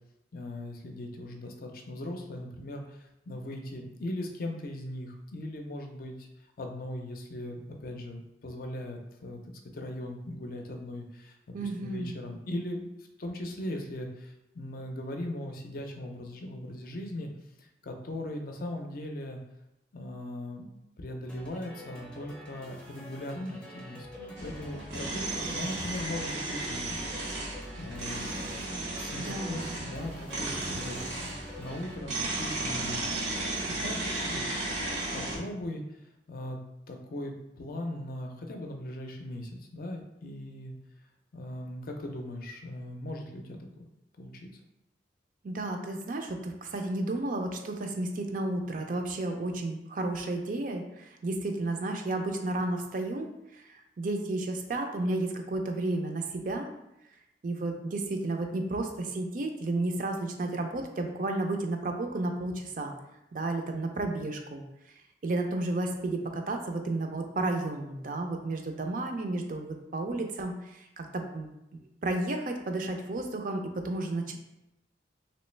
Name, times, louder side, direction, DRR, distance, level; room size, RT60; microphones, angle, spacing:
voice 1, 0.3-6.3 6.6-9.4 9.7-12.8 13.2-17.3 17.6-19.4 19.9-20.7 21.0-27.0 27.8-28.4 29.0-31.3 31.6-33.2 33.8-34.0 34.3-34.4 35.1-36.0 36.3-36.6 36.9-40.7 41.3-43.9 44.2-44.5, left 1 dB, 55° left, 3 dB, 0.5 m, -39 dB
voice 2, 11.5-12.2 29.2-29.8 45.4-56.7 57.4-62.9 63.3-64.6 65.2-71.5 72.0-74.4, right 2 dB, 50° right, 4 dB, 0.4 m, -32 dB
sound 1, 21.3-32.0, left 1 dB, 5° left, 0.5 m, -47 dB
sound 2, 24.4-35.4, right 2 dB, 85° right, 0.9 m, -34 dB
3.0 x 3.0 x 3.2 m, 0.88 s
head